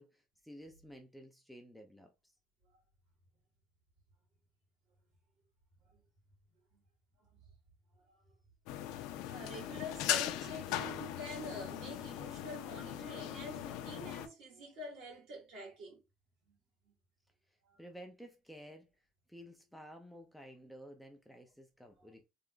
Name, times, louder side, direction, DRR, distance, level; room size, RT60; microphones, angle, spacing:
voice 1, 0.0-2.1 17.8-18.9 19.3-22.3, equal, ahead, 0.4 m, -53 dB
sound 1, 8.7-14.3, left 12 dB, 90° left, 0.4 m, -39 dB
voice 2, 9.2-16.0, equal, 60° right, 2.0 m, -46 dB
3.3 x 2.4 x 3.7 m
cardioid pair, 155°, 0 cm